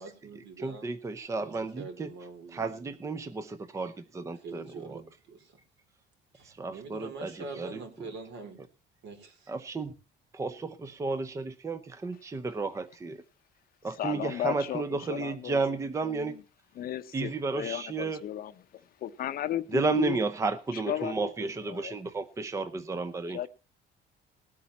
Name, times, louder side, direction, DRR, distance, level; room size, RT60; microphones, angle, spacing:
voice 1, 0.0-0.9 1.4-2.9 4.4-5.6 6.3-8.6 9.0-9.5, right 4 dB, 70° right, 4.2 m, -44 dB
voice 2, 0.6-2.1 2.5-5.0 6.4-8.1 9.5-9.9 10.3-13.2 13.8-16.3 17.1-18.2 19.7-23.4, right 3 dB, 15° right, 0.6 m, -33 dB
voice 3, 14.0-15.6 16.0-16.4 16.8-20.2 20.7-21.3 21.6-22.0 23.3-23.5, left 11 dB, 50° left, 0.8 m, -35 dB
19.0 x 8.6 x 4.2 m
cardioid pair, 150°, 19 cm